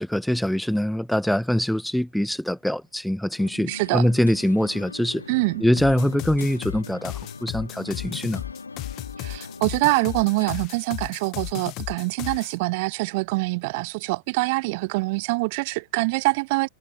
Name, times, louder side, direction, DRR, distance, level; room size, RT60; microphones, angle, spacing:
voice 1, 0.0-5.2 5.6-8.4, equal, ahead, 0.3 m, -23 dB
sound 1, 3.4-10.6, left 4 dB, 80° left, 3.2 m, -40 dB
voice 2, 3.7-4.1 5.3-5.6 9.2-16.7, right 26 dB, 50° right, 1.1 m, -25 dB
sound 2, 5.8-12.5, left 21 dB, 40° left, 1.3 m, -35 dB
figure-of-eight pair, 90°, 0 cm